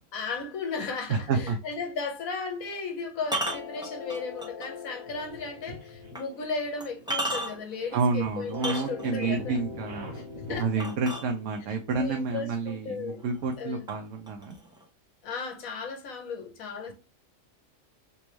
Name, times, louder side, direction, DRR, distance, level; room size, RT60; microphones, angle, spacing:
voice 1, 0.1-9.6 10.1-10.2 10.5-10.9 11.7-13.2 13.6-13.8 15.2-16.9, left 4 dB, 80° left, 1.5 m, -35 dB
voice 2, 1.1-1.6 7.9-10.1 10.6-14.6, right 4 dB, 70° right, 0.9 m, -29 dB
sound 1, 1.5-1.6 3.2-4.7 5.2-5.3 6.1-6.2 6.8-7.8 8.5-9.3 10.8-11.7 12.7-12.8 13.2-13.6 13.9-14.8, right 1 dB, 5° right, 1.0 m, -33 dB
sound 2, 3.4-7.8 8.5-13.4, left 6 dB, 35° left, 0.4 m, -44 dB
sound 3, 5.1-10.6, equal, 55° right, 1.4 m, -43 dB
3.5 x 3.0 x 3.0 m
omnidirectional pair, 1.4 m